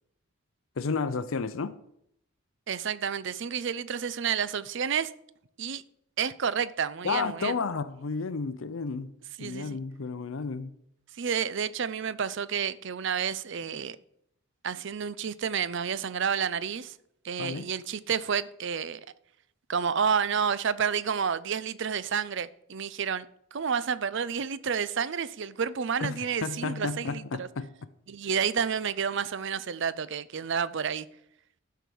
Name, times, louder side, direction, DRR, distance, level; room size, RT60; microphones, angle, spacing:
voice 1, 0.8-1.8 7.0-9.1 9.4-10.7 17.4-17.7 26.0-27.7, left 4 dB, 70° left, 0.6 m, -32 dB
voice 2, 2.7-5.1 5.6-5.8 6.2-7.6 9.4-9.8 11.2-14.0 14.6-16.9 17.2-19.0 19.7-23.3 23.5-27.5 28.1-31.1, right 7 dB, 60° right, 0.5 m, -30 dB
12.5 x 4.7 x 7.0 m
head